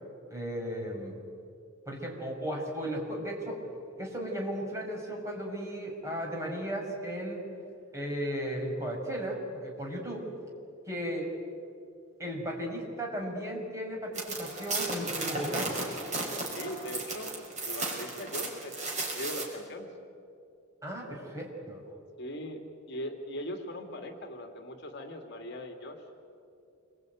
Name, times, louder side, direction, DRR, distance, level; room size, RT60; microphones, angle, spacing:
voice 1, 0.3-1.2 1.9-3.7 4.0-7.4 7.9-10.2 10.9-11.3 12.2-15.9 20.8-21.8, equal, 15° right, -1 dB, 5.6 m, -35 dB
sound 1, 14.1-19.4, right 2 dB, 35° right, 5.5 m, -34 dB
voice 2, 16.5-17.4 17.6-19.9 22.2-22.6 22.9-26.0, equal, 55° left, 4 dB, 2.5 m, -40 dB
28.0 x 23.0 x 9.3 m, 2.5 s
head